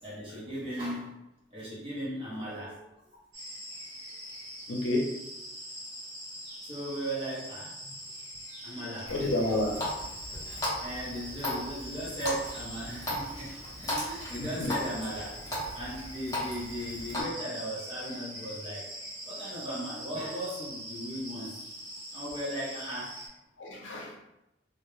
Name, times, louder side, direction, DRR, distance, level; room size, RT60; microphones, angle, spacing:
voice 1, 0.0-1.2 1.5-2.9 6.6-8.0 8.6-9.1 10.8-15.5 15.7-18.9 19.3-21.6 22.1-23.2, equal, 30° right, -7 dB, 0.7 m, -37 dB
sound 1, 3.3-23.3, equal, 75° right, 0.8 m, -43 dB
voice 2, 4.7-5.1 9.1-9.8 14.4-14.7 23.6-24.1, left 1 dB, 90° left, 0 dB, 0.6 m, -29 dB
Water tap faucet, 9.1-17.2, left 1 dB, 20° left, 0.8 m, -37 dB
2.2 x 2.1 x 3.1 m, 0.90 s
head